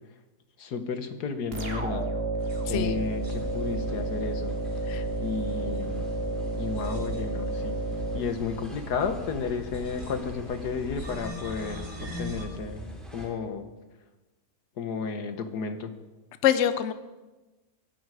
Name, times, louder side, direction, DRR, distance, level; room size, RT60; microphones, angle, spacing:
voice 1, 0.6-2.1 2.7-4.6 5.2-6.1 6.6-7.8 8.1-13.7 14.8-15.9, left 5 dB, 85° left, 8 dB, 1.8 m, -33 dB
sound 1, 1.5-9.0, right 2 dB, 40° right, 1.7 m, -31 dB
sound 2, 2.4-12.5, left 1 dB, 55° right, 3.1 m, -41 dB
voice 2, 2.7-3.0 4.9-5.0 16.4-16.9, left 10 dB, 55° left, 11 dB, 1.0 m, -24 dB
sound 3, 3.2-13.3, right 1 dB, ahead, 3.7 m, -46 dB
23.5 x 11.0 x 4.9 m, 1.1 s
omnidirectional pair, 1.7 m